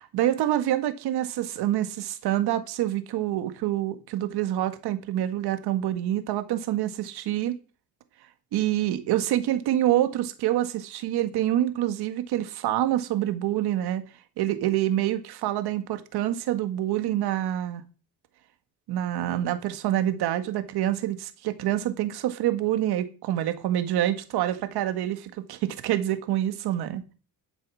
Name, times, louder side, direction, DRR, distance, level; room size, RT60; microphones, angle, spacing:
voice 1, 0.0-7.6 8.5-14.0 14.4-17.8 18.9-27.1, right 12 dB, 90° right, 1.8 m, -26 dB
11.5 x 7.8 x 6.4 m
cardioid pair, 100°, 37 cm